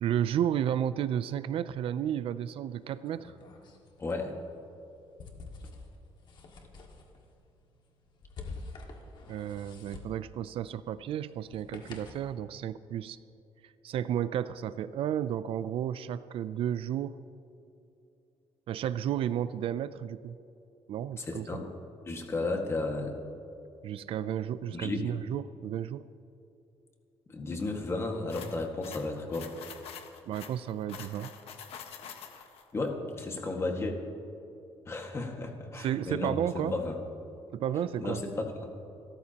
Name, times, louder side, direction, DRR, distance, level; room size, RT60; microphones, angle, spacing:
voice 1, 0.0-3.3 9.3-13.2 13.8-17.2 18.7-20.4 20.9-21.6 23.8-26.0 30.3-31.3 35.8-36.7 37.5-38.2, right 10 dB, 60° right, 14 dB, 0.4 m, -32 dB
sound 1, 2.7-12.3, left 3 dB, 50° left, 1.9 m, -48 dB
voice 2, 4.0-4.3 21.2-21.7 22.1-23.2 24.7-25.1 27.3-29.5 32.7-34.0 34.9-37.0 38.0-38.4, left 2 dB, 25° left, 2 dB, 1.8 m, -33 dB
sound 2, 28.3-32.6, left 7 dB, 70° left, 1.4 m, -46 dB
29.0 x 14.0 x 2.9 m, 2.8 s
cardioid pair, 165°, 10 cm